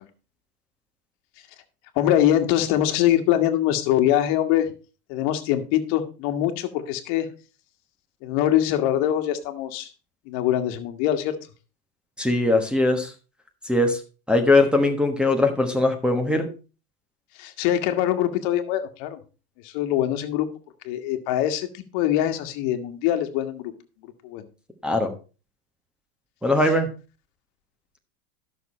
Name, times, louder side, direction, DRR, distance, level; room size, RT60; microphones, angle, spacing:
voice 1, 2.0-4.7 5.1-7.3 8.2-9.9 10.3-11.4 17.4-19.2 19.6-20.5 20.8-23.7 24.2-24.5, left 12 dB, 50° left, 7 dB, 1.7 m, -23 dB
voice 2, 12.2-13.1 13.6-14.0 14.3-16.5 24.8-25.1 26.4-26.9, left 2 dB, ahead, 1 dB, 1.2 m, -20 dB
12.0 x 6.5 x 4.3 m, 0.33 s
supercardioid pair, 130°, 45 cm